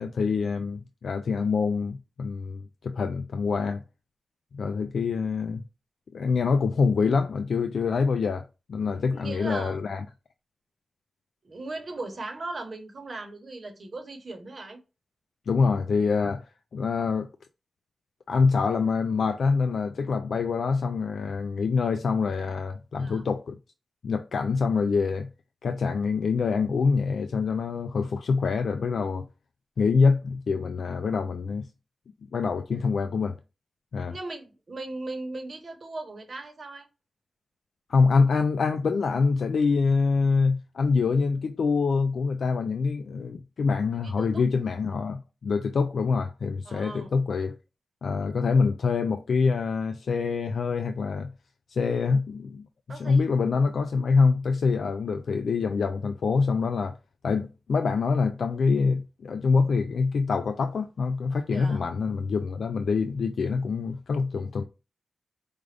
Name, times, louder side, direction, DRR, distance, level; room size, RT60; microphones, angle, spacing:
voice 1, 0.0-3.8 4.5-5.6 6.1-10.0 15.5-16.5 16.7-17.3 18.3-23.6 24.0-25.3 25.6-29.3 29.8-31.7 32.3-33.4 33.9-34.1 37.9-47.6 48.0-51.3 51.7-57.0 57.2-64.6, left 4 dB, 75° left, 0.3 m, -25 dB
voice 2, 9.1-9.8 11.4-14.8 23.0-23.2 32.7-32.8 34.1-36.9 43.9-44.4 46.7-47.1 52.9-53.3 61.5-61.8, right 2 dB, 45° right, 1.0 m, -38 dB
4.9 x 2.5 x 3.3 m
wide cardioid pair, 115°, 0 cm